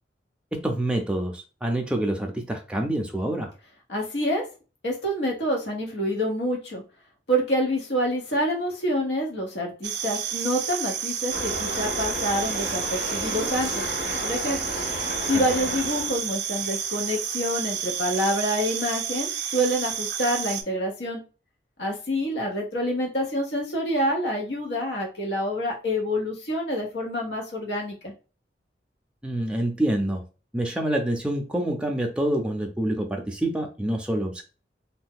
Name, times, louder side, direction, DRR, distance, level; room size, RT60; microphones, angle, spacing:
voice 1, 0.5-3.5 15.2-15.4 29.2-30.2 30.5-34.4, right 1 dB, 5° right, 2 dB, 0.5 m, -27 dB
voice 2, 3.9-4.4 4.8-6.8 7.3-13.8 14.2-14.7 15.3-21.2 21.8-28.1, equal, 80° left, 0 dB, 1.1 m, -27 dB
sound 1, 9.8-20.6, right 8 dB, 70° right, 0.4 m, -30 dB
sound 2, 11.3-16.3, left 1 dB, 55° left, 0.7 m, -33 dB
2.7 x 2.2 x 3.6 m, 0.33 s
head